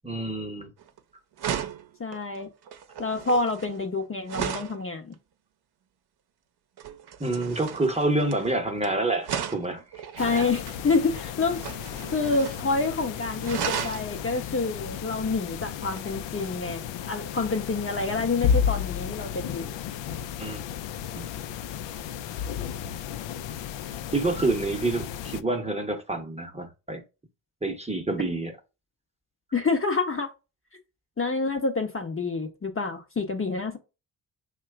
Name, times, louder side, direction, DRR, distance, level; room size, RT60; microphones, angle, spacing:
voice 1, 0.0-0.7 7.2-10.5 20.4-20.6 21.1-21.2 24.1-27.0 27.6-28.5, right 2 dB, 15° right, 0.9 m, -28 dB
sound 1, 0.8-1.0 1.4-4.8 6.8-8.9 9.2-10.8 11.5-12.7 13.0-13.1 13.4-14.1 15.9-16.1, right 8 dB, 55° right, 0.8 m, -35 dB
voice 2, 2.0-2.5 3.0-5.1 10.2-11.7 12.1-16.8 17.1-19.7 29.5-30.3 31.2-33.8, left 3 dB, 25° left, 0.9 m, -27 dB
sound 2, 10.2-25.4, left 8 dB, 65° left, 0.5 m, -33 dB
2.8 x 2.3 x 3.5 m
hypercardioid pair, 50°, 48 cm